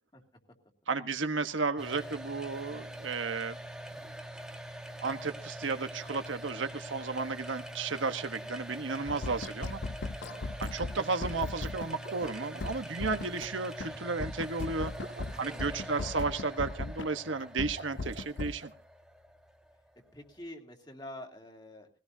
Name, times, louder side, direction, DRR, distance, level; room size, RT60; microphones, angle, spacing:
voice 1, 0.9-3.6 5.0-9.8 10.6-14.9 15.4-18.7, right 4 dB, 85° right, 8 dB, 1.2 m, -33 dB
sound 1, 1.8-20.5, right 1 dB, 5° right, 1.2 m, -44 dB
sound 2, 9.1-11.9 12.2-12.3 12.6-13.5 13.8-13.9 14.2-17.1 17.4-18.5, left 3 dB, 80° left, 0.7 m, -37 dB
sound 3, 12.0-12.8 14.6-15.5 17.6-18.7, right 2 dB, 65° right, 2.0 m, -48 dB
voice 2, 15.3-15.9 20.1-21.9, left 1 dB, 25° left, 2 dB, 2.4 m, -47 dB
20.0 x 16.5 x 2.8 m, 0.35 s
head